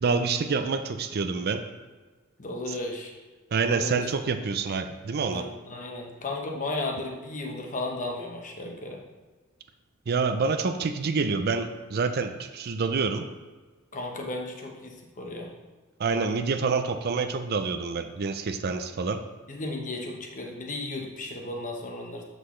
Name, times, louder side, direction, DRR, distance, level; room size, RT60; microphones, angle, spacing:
voice 1, 0.0-1.6 3.5-5.4 10.1-13.3 16.0-19.2, right 4 dB, 45° right, 8 dB, 0.4 m, -27 dB
voice 2, 2.4-3.1 3.8-4.1 5.3-9.0 13.9-15.5 19.5-22.2, left 2 dB, 35° left, 1 dB, 1.0 m, -34 dB
7.7 x 6.2 x 3.2 m, 1.3 s
head